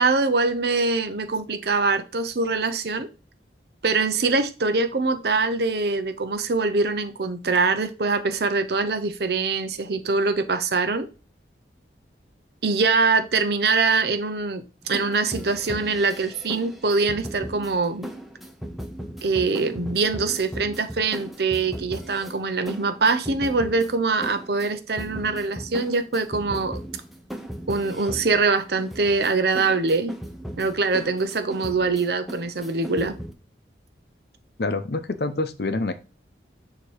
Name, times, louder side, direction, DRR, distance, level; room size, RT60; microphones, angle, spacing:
voice 1, 0.0-3.1 3.8-11.1 12.6-18.1 19.2-26.8 27.7-30.1 30.6-33.2, right 4 dB, 65° right, 0.7 m, -23 dB
sound 1, 14.8-33.3, equal, ahead, 0.6 m, -37 dB
voice 2, 34.6-35.9, left 2 dB, 65° left, 0.7 m, -26 dB
6.9 x 2.9 x 4.9 m
head